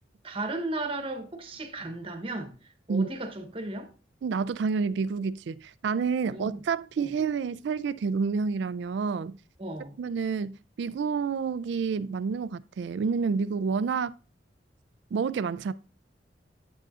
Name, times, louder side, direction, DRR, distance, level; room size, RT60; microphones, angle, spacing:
voice 1, 0.2-2.5 2.9-3.9 6.3-6.6 7.0-7.1 9.6-10.0, right 2 dB, 30° right, 1.0 m, -35 dB
voice 2, 4.2-9.4 10.0-14.1 15.1-15.7, right 5 dB, 70° right, 0.3 m, -29 dB
9.2 x 7.3 x 2.4 m
head